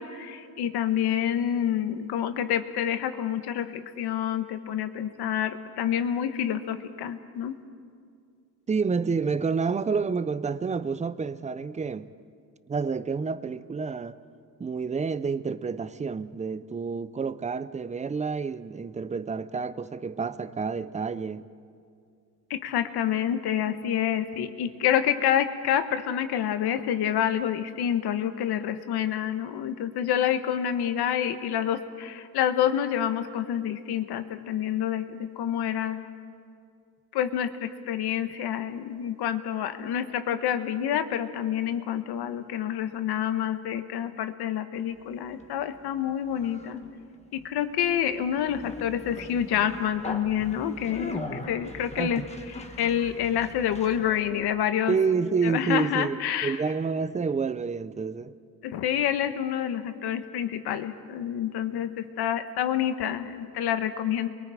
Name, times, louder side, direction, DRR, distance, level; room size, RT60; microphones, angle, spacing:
voice 1, 0.0-7.6 22.5-36.0 37.1-46.8 47.3-52.2 52.8-54.9 55.4-56.6 58.6-64.3, left 10 dB, 85° left, 1.3 m, -28 dB
voice 2, 8.7-12.1 12.7-14.2 14.6-21.5 51.9-52.3 54.9-58.3, right 5 dB, 20° right, 0.5 m, -29 dB
Conversation, 44.9-54.4, left 2 dB, 15° left, 1.4 m, -42 dB
28.0 x 22.5 x 4.9 m
cardioid pair, 140°, 38 cm